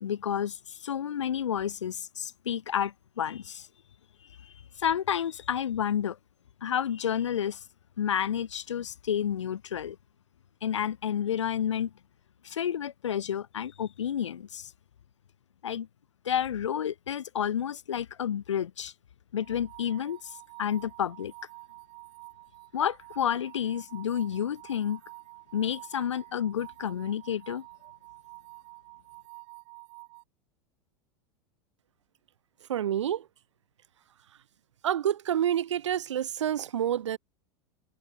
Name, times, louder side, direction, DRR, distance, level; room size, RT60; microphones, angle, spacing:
voice 1, 0.0-3.7 4.4-6.2 6.6-7.6 8.0-10.0 10.6-11.9 12.4-14.7 15.6-15.9 16.2-18.9 19.3-20.2 20.6-21.3 22.7-25.0 25.5-27.6, left 9 dB, 85° left, 2.1 m, -30 dB
sound 1, 19.4-30.2, right 34 dB, 55° right, 6.3 m, -49 dB
voice 2, 32.7-33.2 34.8-37.2, right 10 dB, 85° right, 0.8 m, -28 dB
hypercardioid pair, 95°, 15 cm